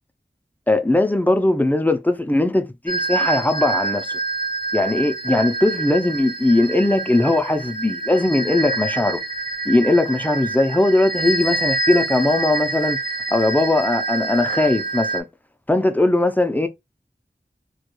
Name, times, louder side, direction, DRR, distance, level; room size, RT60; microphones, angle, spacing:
voice 1, 0.7-4.2 4.7-9.2 9.7-13.0 13.3-15.2 15.7-16.7, left 2 dB, 10° left, 0.4 m, -19 dB
sound 1, 2.9-15.2, right 3 dB, 55° right, 0.6 m, -27 dB
2.3 x 2.2 x 2.9 m
wide cardioid pair, 50°, 17 cm